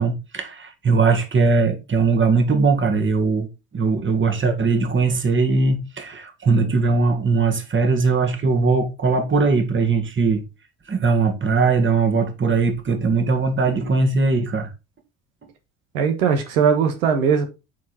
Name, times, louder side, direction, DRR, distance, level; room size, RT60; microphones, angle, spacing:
voice 1, 0.0-3.5 3.7-10.4 10.9-14.7, right 4 dB, 30° right, 2.0 m, -20 dB
voice 2, 15.9-17.5, right 6 dB, 80° right, 1.5 m, -19 dB
8.2 x 4.4 x 4.2 m
hypercardioid pair, 65°, 41 cm